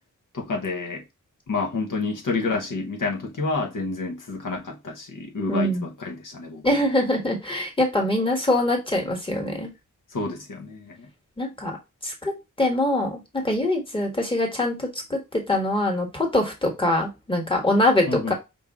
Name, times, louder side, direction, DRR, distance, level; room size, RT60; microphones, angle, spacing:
voice 1, 0.3-1.0 1.5-6.7 10.1-11.1 18.1-18.3, left 3 dB, 75° left, 1.0 m, -29 dB
voice 2, 5.5-5.9 6.6-9.7 11.4-11.8 12.0-18.3, left 1 dB, 15° left, 1.4 m, -24 dB
5.3 x 2.6 x 3.6 m
wide cardioid pair, 130°, 32 cm